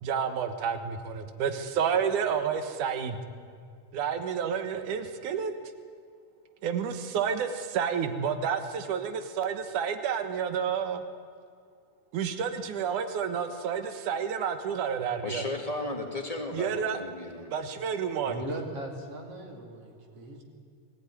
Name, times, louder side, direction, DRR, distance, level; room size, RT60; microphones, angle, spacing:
voice 1, 0.0-3.2 3.9-5.5 6.6-11.0 12.1-15.4 16.5-17.0 17.5-18.4, right 7 dB, 75° right, 8 dB, 2.9 m, -30 dB
voice 2, 15.2-17.5, left 2 dB, 15° left, 3 dB, 1.7 m, -35 dB
voice 3, 18.2-20.4, right 1 dB, 50° right, 1 dB, 3.4 m, -38 dB
22.5 x 16.5 x 10.0 m, 2.2 s
omnidirectional pair, 3.6 m